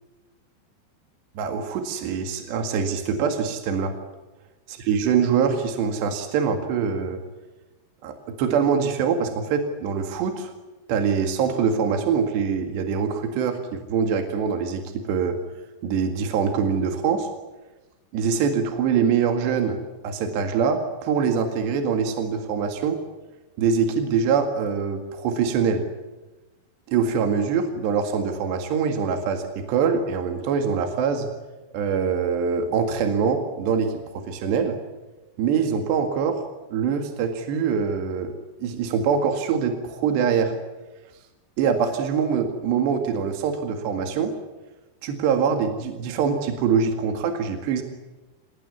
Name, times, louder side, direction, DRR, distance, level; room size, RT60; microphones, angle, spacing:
voice 1, 1.4-3.9 4.9-7.2 8.0-10.5 10.9-15.4 15.8-17.3 18.1-23.0 23.6-25.8 26.9-31.3 31.7-34.8 35.4-36.4 36.7-38.3 38.6-40.5 41.6-44.3 45.0-47.8, right 6 dB, 75° right, 5 dB, 4.2 m, -24 dB
27.0 x 19.0 x 9.6 m, 1.1 s
omnidirectional pair, 5.0 m